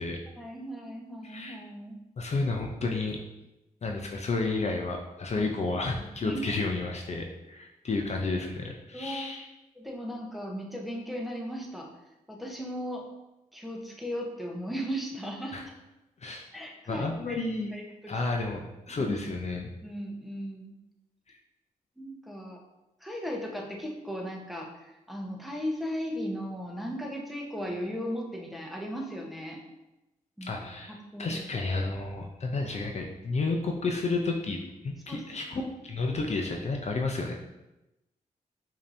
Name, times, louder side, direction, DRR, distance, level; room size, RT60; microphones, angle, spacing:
voice 1, 0.4-2.0 5.3-5.5 6.2-6.4 8.9-9.3 9.7-11.9 12.3-13.0 13.5-15.6 16.5-17.4 17.7-18.1 19.0-19.1 19.8-20.7 22.0-22.6 23.0-29.6 30.4-30.5 30.9-31.3 35.1-35.2 35.5-35.6, equal, ahead, 0 dB, 0.9 m, -36 dB
voice 2, 1.2-1.6 2.2-3.2 3.8-9.5 15.5-15.6 16.2-16.4 16.9-17.7 18.1-19.7 21.3-21.4 30.4-34.6 34.8-37.3, left 3 dB, 45° left, 2 dB, 0.6 m, -31 dB
5.1 x 2.8 x 2.6 m, 0.96 s
supercardioid pair, 45°, 16 cm